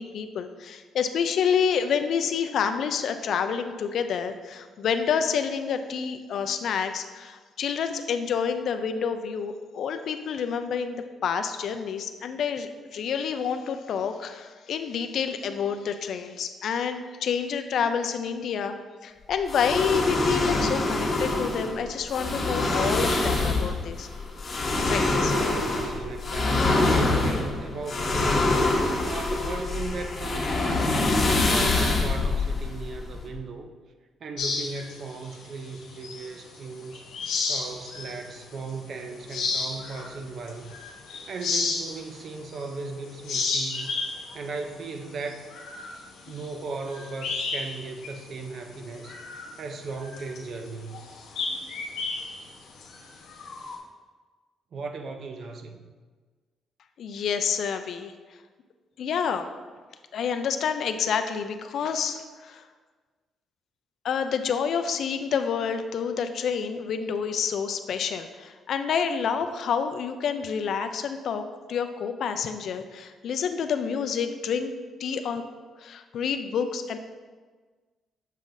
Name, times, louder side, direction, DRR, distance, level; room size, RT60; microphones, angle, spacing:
voice 1, 0.0-18.8 19.0-24.1 24.9-25.3 57.0-58.1 59.0-59.5 60.1-62.6 64.0-74.7 75.0-75.4 75.8-77.0, left 7 dB, 65° left, 8 dB, 0.4 m, -28 dB
sound 1, 19.5-33.4, left 2 dB, 35° left, 1.3 m, -25 dB
voice 2, 25.2-28.6 29.0-33.7 34.2-37.0 37.5-40.8 41.1-43.9 44.3-45.4 46.3-51.1 54.7-55.9, right 3 dB, 60° right, 5 dB, 0.6 m, -37 dB
sound 2, 34.4-36.6 36.9-38.3 38.7-38.8 39.2-42.9 43.2-47.8 48.0-48.2 48.6-53.8, left 4 dB, 85° left, 1.0 m, -32 dB
7.3 x 5.5 x 2.6 m, 1.4 s
cardioid pair, 90°, 0 cm